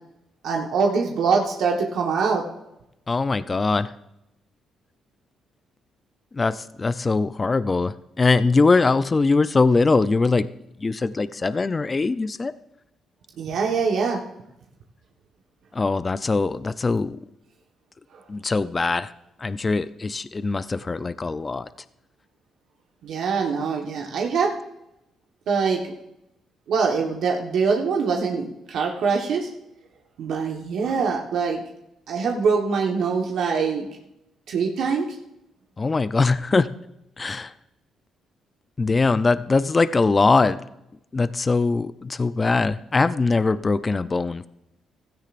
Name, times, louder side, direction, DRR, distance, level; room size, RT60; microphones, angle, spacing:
voice 1, 0.4-2.4 13.4-14.2 18.1-18.2 23.0-24.6 25.5-25.9 26.7-29.5 30.2-31.6 32.1-33.9 34.5-35.2, right 5 dB, 75° right, 0 dB, 1.3 m, -23 dB
voice 2, 3.1-3.9 6.3-10.5 10.8-12.5 15.7-17.2 18.3-19.1 19.4-21.7 35.8-36.7 37.2-37.5 38.8-40.6 41.1-44.5, left 3 dB, 30° left, 14 dB, 0.5 m, -22 dB
16.0 x 13.5 x 2.5 m, 0.85 s
cardioid pair, 90°, 0 cm